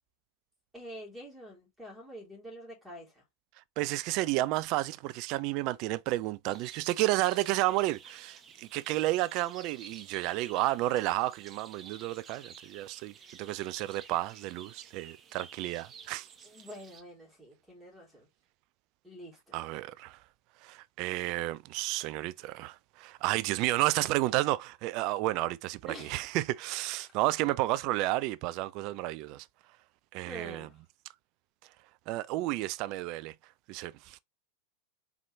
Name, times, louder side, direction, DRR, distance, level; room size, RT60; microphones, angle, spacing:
voice 1, 0.7-3.2 16.4-18.3 19.0-19.6 25.8-26.2 30.2-30.7, equal, 5° right, 3.0 m, -46 dB
voice 2, 3.8-16.3 19.5-20.2 20.6-29.5 30.1-30.7 32.1-33.3 33.7-34.2, right 17 dB, 40° right, 0.3 m, -31 dB
sound 1, 6.5-17.0, right 6 dB, 25° right, 0.7 m, -52 dB
4.5 x 3.6 x 3.0 m
figure-of-eight pair, 90°, 0 cm